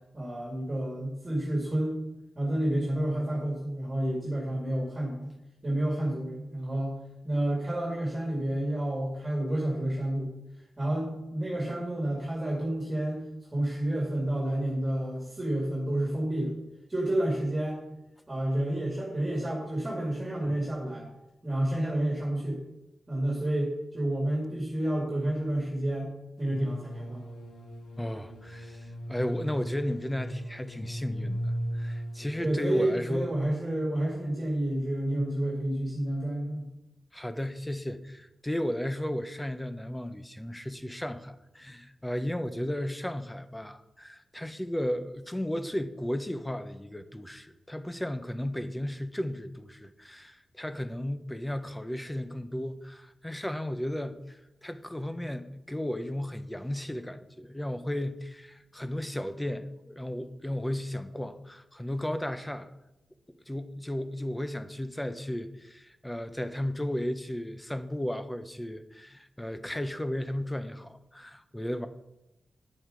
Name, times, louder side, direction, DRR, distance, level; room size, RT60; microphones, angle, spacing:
voice 1, 0.1-1.9 2.4-5.3 5.6-6.9 7.2-10.3 10.8-13.2 13.5-16.5 16.9-17.8 18.3-21.1 21.4-22.6 23.1-26.1 26.4-27.3 32.4-36.7, right 1 dB, 20° right, 2.3 m, -30 dB
sound 1, 26.4-32.4, equal, 80° left, 2.3 m, -37 dB
voice 2, 28.0-33.4 37.1-62.7 63.5-71.9, left 1 dB, 10° left, 0.7 m, -34 dB
9.3 x 7.8 x 5.1 m
wide cardioid pair, 110°, 0 cm